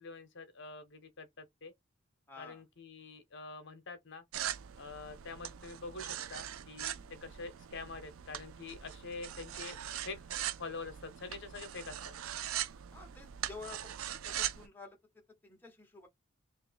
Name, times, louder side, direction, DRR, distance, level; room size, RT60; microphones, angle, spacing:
voice 1, 0.0-1.7 2.4-4.2 4.8-6.9 7.2-10.2 10.6-12.1, left 3 dB, 60° left, 0.9 m, -46 dB
voice 2, 2.3-2.6 6.9-7.1 12.9-13.9 14.2-16.1, left 4 dB, 10° left, 0.9 m, -51 dB
sound 1, 4.3-14.7, right 11 dB, 75° right, 0.4 m, -41 dB
2.9 x 2.8 x 4.0 m
head